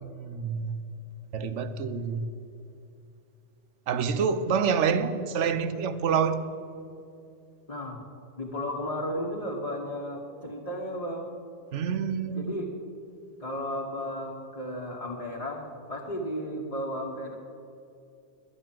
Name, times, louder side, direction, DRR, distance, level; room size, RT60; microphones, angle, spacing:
voice 1, 0.0-0.7 1.3-2.2 3.9-6.4 11.7-12.5, right 6 dB, 85° right, 11 dB, 1.1 m, -27 dB
voice 2, 7.7-8.0 8.4-11.3 12.3-12.7 13.4-17.4, equal, 30° left, -3 dB, 1.3 m, -34 dB
11.0 x 9.8 x 7.5 m, 2.6 s
omnidirectional pair, 1.2 m